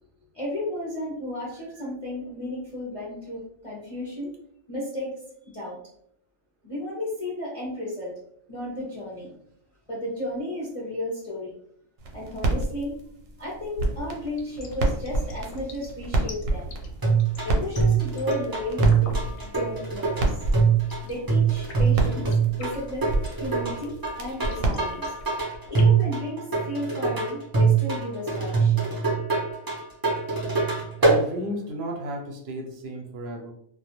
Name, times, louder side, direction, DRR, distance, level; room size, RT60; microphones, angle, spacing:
voice 1, 0.3-4.3 4.7-5.2 5.5-5.8 6.6-8.1 8.5-9.3 9.9-11.5 12.1-13.0 13.4-16.7 17.4-20.4 21.0-23.1 23.4-25.1 25.7-28.9, left 1 dB, 45° left, -6 dB, 0.4 m, -33 dB
sound 1, 12.0-25.4, right 2 dB, 90° right, 1.0 m, -30 dB
sound 2, 14.3-26.0, left 4 dB, 65° left, 0.8 m, -44 dB
sound 3, 17.0-31.2, right 5 dB, 35° right, 0.3 m, -23 dB
voice 2, 31.0-33.5, right 1 dB, 60° right, 0 dB, 0.7 m, -33 dB
2.2 x 2.2 x 2.9 m, 0.70 s
omnidirectional pair, 1.4 m